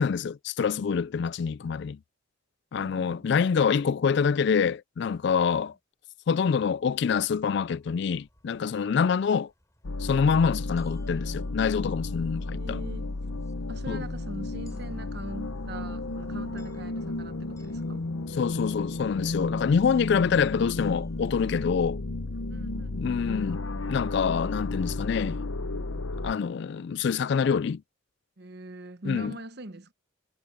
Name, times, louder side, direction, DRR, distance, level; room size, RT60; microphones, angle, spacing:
voice 1, 0.0-2.0 2.7-5.7 6.3-9.5 10.0-12.8 13.9-14.0 18.4-22.0 22.9-23.6 23.9-25.4 26.2-27.8 29.0-29.3, left 6 dB, 55° left, 0.3 m, -26 dB
voice 2, 2.7-3.3 5.5-5.6 12.4-13.1 13.7-18.0 22.5-23.1 28.4-29.9, right 1 dB, 50° right, 1.1 m, -42 dB
sound 1, 7.4-21.9, left 1 dB, 15° left, 7.9 m, -63 dB
sound 2, 9.8-26.3, left 2 dB, 75° left, 0.8 m, -33 dB
head